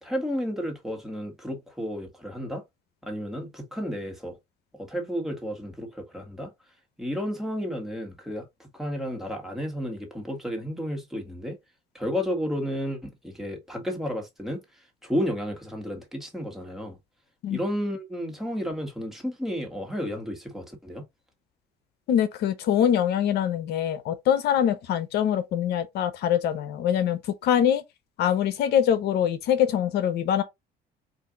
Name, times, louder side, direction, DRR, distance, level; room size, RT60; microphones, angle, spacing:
voice 1, 0.0-2.6 3.0-4.4 4.8-6.5 7.0-11.6 11.9-17.0 17.5-21.0, equal, ahead, 1.5 m, -32 dB
voice 2, 22.1-27.8 28.2-30.4, left 9 dB, 75° left, 0.7 m, -24 dB
4.4 x 2.5 x 3.7 m
cardioid pair, 110°, 17 cm